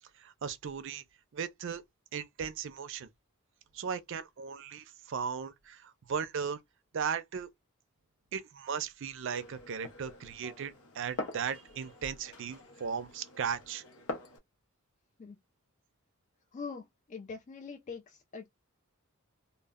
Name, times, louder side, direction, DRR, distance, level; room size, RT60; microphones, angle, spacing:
voice 1, 0.2-1.0 1.3-1.8 2.1-3.1 3.7-6.6 6.9-7.5 8.3-13.8, right 6 dB, 60° right, 0.4 m, -37 dB
Glass, 9.2-14.4, left 2 dB, 85° left, 0.7 m, -44 dB
voice 2, 16.5-18.5, left 5 dB, 35° left, 0.3 m, -43 dB
2.1 x 2.0 x 3.4 m
head